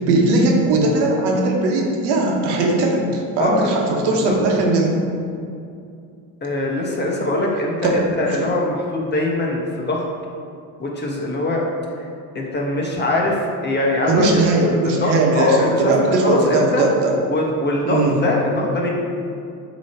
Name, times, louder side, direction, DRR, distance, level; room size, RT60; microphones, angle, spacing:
voice 1, 0.1-5.0 7.8-8.2 14.1-17.1 17.8-18.2, right 2 dB, 75° right, 0 dB, 1.1 m, -19 dB
voice 2, 3.4-3.7 4.2-4.3 6.4-10.0 10.8-11.6 12.3-15.9 16.2-16.8 17.3-18.9, left 2 dB, 25° left, -2 dB, 1.2 m, -22 dB
6.8 x 3.1 x 4.4 m, 2.4 s
supercardioid pair, 85°, 41 cm